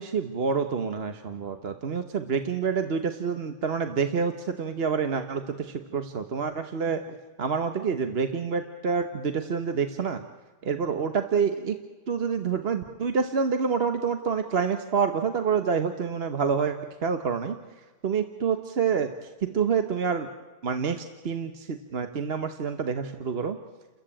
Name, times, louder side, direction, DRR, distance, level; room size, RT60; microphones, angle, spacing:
voice 1, 0.0-7.0 7.4-10.2 10.6-11.8 12.1-16.8 17.0-17.5 18.0-19.1 19.4-20.3 20.6-23.6, right 6 dB, 50° right, 8 dB, 1.2 m, -27 dB
30.0 x 14.5 x 8.8 m, 1.3 s
omnidirectional pair, 1.5 m